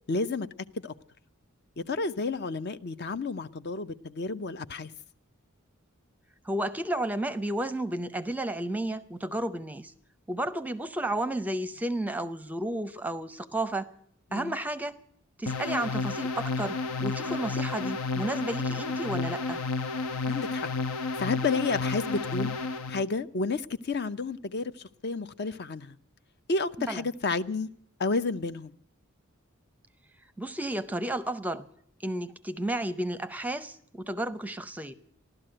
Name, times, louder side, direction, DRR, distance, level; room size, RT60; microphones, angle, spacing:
voice 1, 0.1-0.5 0.8-0.9 1.9-4.9 14.3-14.5 20.3-20.7 21.2-22.5 22.9-24.7 25.0-25.9 26.5-27.7 28.0-28.7, left 3 dB, 50° left, 0.6 m, -31 dB
voice 2, 6.4-9.9 10.3-13.9 14.3-15.0 15.4-19.6 26.8-27.0 30.4-31.7 32.0-34.9, right 1 dB, 5° right, 0.6 m, -32 dB
sound 1, 15.5-23.0, left 3 dB, 85° left, 1.0 m, -31 dB
15.5 x 12.0 x 7.7 m
head